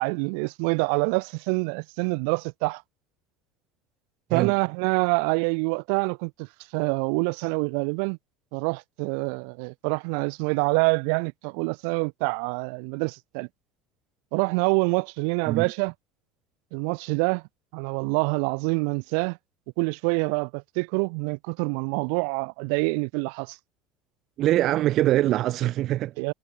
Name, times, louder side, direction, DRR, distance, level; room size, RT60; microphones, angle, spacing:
voice 1, 0.0-2.8 4.3-6.5 6.7-8.2 8.5-13.5 14.3-15.9 16.7-17.4 17.7-19.4 19.8-23.6 26.2-26.3, right 40 dB or more, 75° right, 1.0 m, -26 dB
voice 2, 24.4-26.1, right 14 dB, 50° right, 0.8 m, -23 dB
cardioid pair, 135°, 0 cm